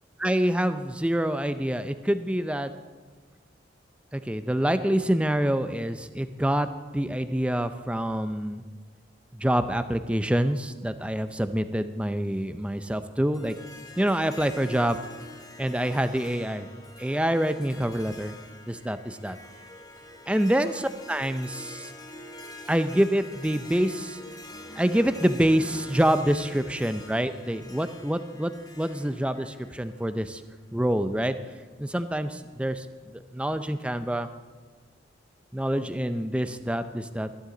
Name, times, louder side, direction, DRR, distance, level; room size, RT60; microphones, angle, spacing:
voice 1, 0.2-2.7 4.1-6.7 6.9-8.6 9.3-13.6 14.0-15.0 15.6-16.7 17.0-18.3 18.7-19.4 20.3-21.9 22.7-24.2 24.5-30.4 30.7-31.3 31.8-32.9 33.3-34.3 35.5-37.3, right 1 dB, 5° right, 10 dB, 0.5 m, -26 dB
Harp, 13.3-30.6, left 1 dB, 20° left, 1.1 m, -45 dB
22.0 x 11.5 x 3.9 m, 1.4 s
head